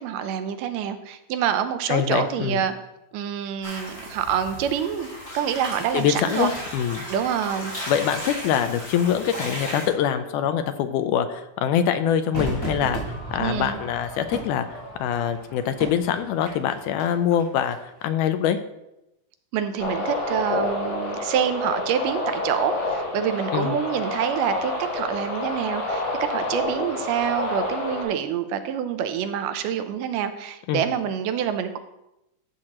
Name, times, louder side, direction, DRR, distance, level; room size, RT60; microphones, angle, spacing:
voice 1, 0.0-2.7 3.1-5.1 5.3-6.5 7.1-7.7 13.4-13.8 19.5-31.8, right 9 dB, 80° right, 9 dB, 2.2 m, -26 dB
voice 2, 1.9-2.6 5.9-7.0 7.9-13.0 13.3-17.8 18.0-18.6 23.5-23.8 30.7-30.8, left 9 dB, 80° left, 9 dB, 2.0 m, -24 dB
sound 1, 3.6-9.9, equal, 20° left, 3.8 m, -35 dB
Crowd / Fireworks, 12.3-17.7 18.0-18.1, right 2 dB, 5° left, 3.4 m, -34 dB
sound 2, 19.8-28.0, left 2 dB, 50° left, 2.5 m, -28 dB
12.5 x 7.4 x 2.9 m, 0.90 s
omnidirectional pair, 3.8 m